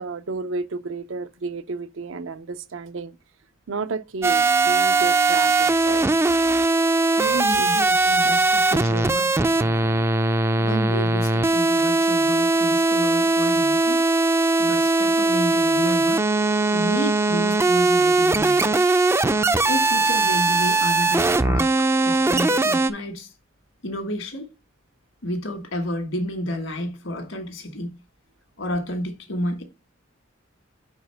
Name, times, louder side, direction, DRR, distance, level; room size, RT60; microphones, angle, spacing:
voice 1, 0.0-3.2 3.7-6.1 22.1-22.2, right 3 dB, 80° right, 0.6 m, -31 dB
sound 1, 4.2-22.9, right 3 dB, 15° right, 0.3 m, -20 dB
voice 2, 7.2-9.9 10.6-14.0 14.6-16.2 16.7-18.8 19.7-23.3 23.8-24.5 25.2-27.9 28.6-29.6, equal, 75° left, 1.6 m, -31 dB
5.1 x 4.5 x 5.6 m
head